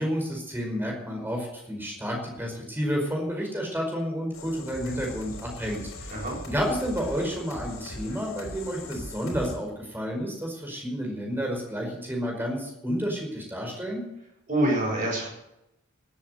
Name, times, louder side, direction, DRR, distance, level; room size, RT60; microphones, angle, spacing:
voice 1, 0.0-6.1 6.4-14.0, equal, 10° right, 0 dB, 5.0 m, -30 dB
sound 1, 4.3-9.6, left 1 dB, 75° left, 3.3 m, -40 dB
voice 2, 14.5-15.3, right 1 dB, 35° right, -6 dB, 6.8 m, -25 dB
18.0 x 8.7 x 6.6 m, 0.85 s
head